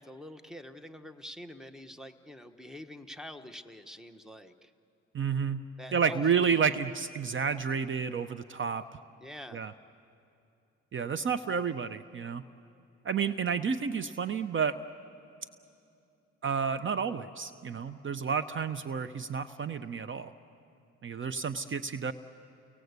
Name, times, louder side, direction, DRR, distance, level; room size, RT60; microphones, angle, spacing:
voice 1, 0.0-4.7 5.8-6.7 9.2-9.6, equal, ahead, 9 dB, 1.0 m, -46 dB
voice 2, 5.1-5.6 5.9-9.0 9.5-9.7 10.9-12.4 13.0-14.8 16.4-20.3 21.0-22.1, right 6 dB, 40° right, 12 dB, 0.7 m, -30 dB
30.0 x 18.5 x 8.1 m, 2.7 s
cardioid pair, 90°, 30 cm